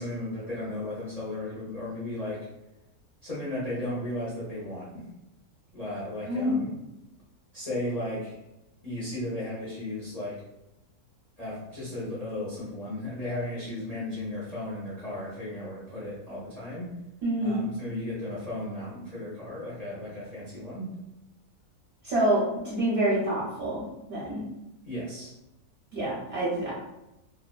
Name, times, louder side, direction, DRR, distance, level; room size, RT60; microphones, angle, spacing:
voice 1, 0.0-2.5 3.2-5.0 5.7-6.7 7.5-8.4 8.8-10.4 11.4-17.0 17.4-20.9 24.9-25.3, left 1 dB, 40° left, -8 dB, 0.6 m, -35 dB
voice 2, 6.3-6.7 17.2-17.6 22.0-24.4 25.9-26.7, right 1 dB, 55° right, -6 dB, 0.7 m, -27 dB
2.5 x 2.3 x 2.2 m, 0.91 s
omnidirectional pair, 1.6 m